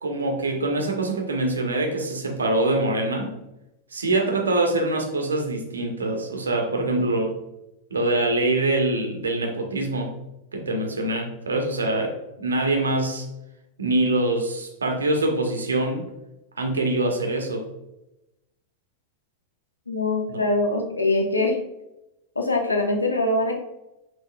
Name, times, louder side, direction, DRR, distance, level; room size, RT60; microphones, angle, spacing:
voice 1, 0.0-3.4 3.9-7.4 7.9-10.1 10.5-13.3 13.8-16.0 16.6-17.7 20.3-20.4, right 2 dB, 75° right, 3 dB, 0.8 m, -24 dB
voice 2, 19.9-21.6 22.4-23.6, left 2 dB, 80° left, 2 dB, 0.7 m, -23 dB
5.5 x 3.0 x 2.2 m, 0.92 s
figure-of-eight pair, 90°, 0 cm